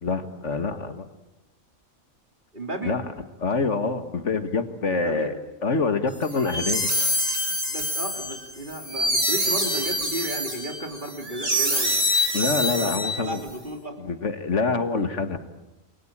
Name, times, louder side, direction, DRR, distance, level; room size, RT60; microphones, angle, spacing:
voice 1, 0.0-1.1 2.8-3.0 3.4-6.9 12.3-13.4 14.0-15.4, left 4 dB, 60° left, 9 dB, 2.0 m, -26 dB
voice 2, 2.5-3.0 4.9-5.3 7.7-12.0 12.8-14.0, right 1 dB, 35° right, 4 dB, 3.3 m, -34 dB
sound 1, 6.2-13.5, equal, 60° right, 5.8 m, -26 dB
28.5 x 22.0 x 8.8 m, 0.98 s
omnidirectional pair, 1.4 m